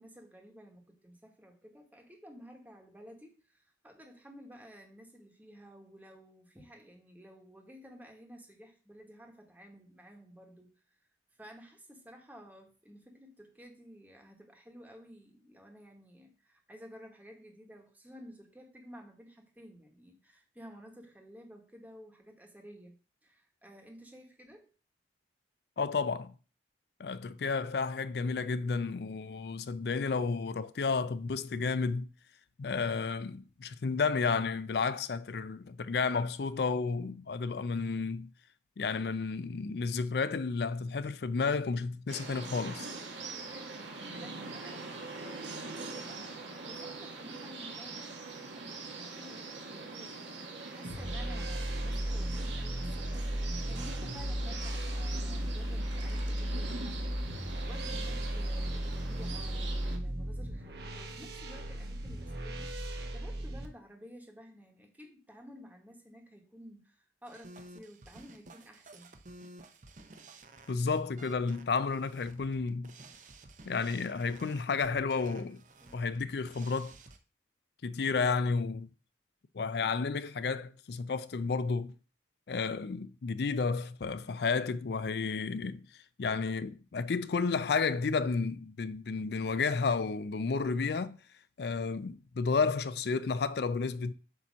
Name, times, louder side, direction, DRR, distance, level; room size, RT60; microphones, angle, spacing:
voice 1, 0.0-11.0 11.4-23.0 23.2-24.7 43.0-46.3 46.6-48.2 48.5-62.7 63.1-69.1 75.8-76.0 79.6-80.0, equal, 10° right, 1.2 m, -53 dB
voice 2, 25.8-26.3 27.0-32.1 32.6-38.3 38.8-42.9 70.7-72.9 73.7-75.6 75.9-76.9 77.8-78.9 79.5-81.9 82.5-85.9 86.2-91.2 91.6-94.1, left 4 dB, 60° left, 0.4 m, -32 dB
sound 1, 42.1-60.0, right 3 dB, 85° right, 1.1 m, -43 dB
sound 2, 50.8-63.7, right 1 dB, 60° right, 0.9 m, -35 dB
sound 3, 67.3-77.2, right 2 dB, 40° right, 0.6 m, -53 dB
8.2 x 2.8 x 6.1 m
head